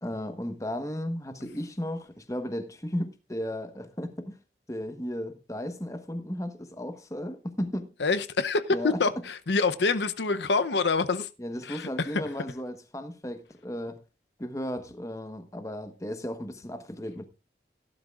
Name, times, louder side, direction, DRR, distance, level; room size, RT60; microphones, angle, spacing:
voice 1, 0.0-4.4 4.7-7.9 8.7-9.0 11.4-14.0 14.4-17.3, equal, 20° left, 1.1 m, -35 dB
voice 2, 8.0-11.3 11.6-12.2, left 4 dB, 80° left, 0.7 m, -26 dB
17.0 x 11.5 x 2.4 m
head